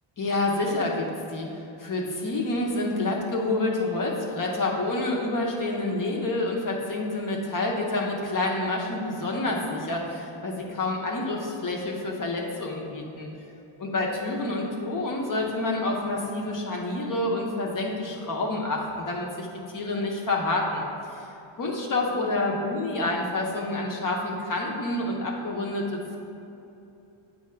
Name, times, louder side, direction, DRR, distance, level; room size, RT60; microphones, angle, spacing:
voice 1, 0.2-1.5 1.8-13.3 13.8-20.9 21.6-26.2, left 2 dB, 40° left, -1 dB, 0.9 m, -28 dB
8.4 x 2.8 x 5.6 m, 2.8 s
wide cardioid pair, 165°, 49 cm